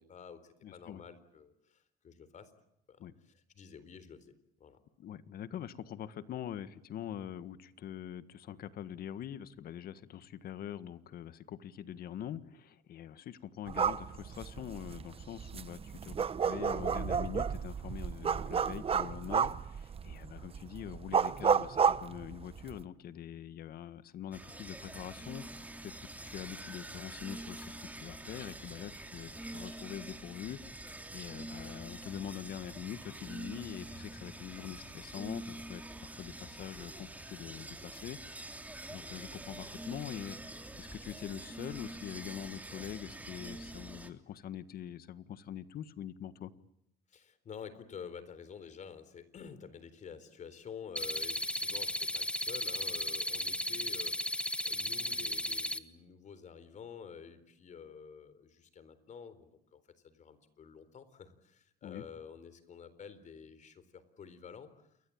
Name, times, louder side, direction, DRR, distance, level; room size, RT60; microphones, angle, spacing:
voice 1, 0.0-2.5 2.9-4.3 4.6-4.8 47.1-64.9, left 6 dB, 45° left, 14 dB, 4.0 m, -50 dB
voice 2, 0.6-1.0 3.0-3.1 5.0-25.4 25.8-25.9 26.2-38.5 38.9-46.5 61.8-62.0, left 10 dB, 65° left, 14 dB, 1.7 m, -44 dB
sound 1, 13.7-22.8, right 6 dB, 35° right, 1.1 m, -32 dB
sound 2, 24.3-44.1, right 1 dB, 10° right, 3.1 m, -46 dB
sound 3, 51.0-55.8, left 1 dB, 5° left, 1.4 m, -35 dB
29.0 x 22.5 x 8.8 m, 0.76 s
cardioid pair, 110°, 17 cm